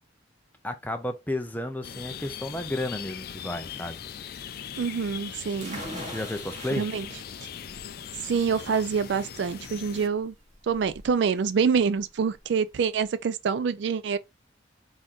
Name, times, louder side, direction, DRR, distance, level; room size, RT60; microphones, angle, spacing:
voice 1, 0.6-4.0 6.1-6.9, left 1 dB, 10° left, 0.6 m, -32 dB
sound 1, 1.8-10.1, left 8 dB, 50° left, 0.4 m, -40 dB
voice 2, 4.8-5.8 6.8-7.1 8.3-10.3 10.6-14.2, right 6 dB, 65° right, 0.4 m, -26 dB
sound 2, 5.6-13.1, equal, 40° right, 1.5 m, -44 dB
4.2 x 3.6 x 3.1 m
head